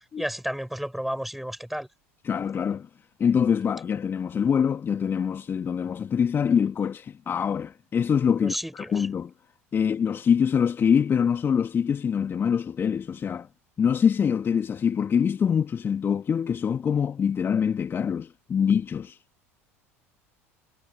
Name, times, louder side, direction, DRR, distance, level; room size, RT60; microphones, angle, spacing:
voice 1, 0.2-1.9 8.4-9.1, equal, ahead, 7.4 m, -32 dB
voice 2, 2.2-2.9 3.2-9.3 9.7-13.5 13.8-19.2, left 7 dB, 30° left, 1.9 m, -24 dB
figure-of-eight pair, 70°, 8 cm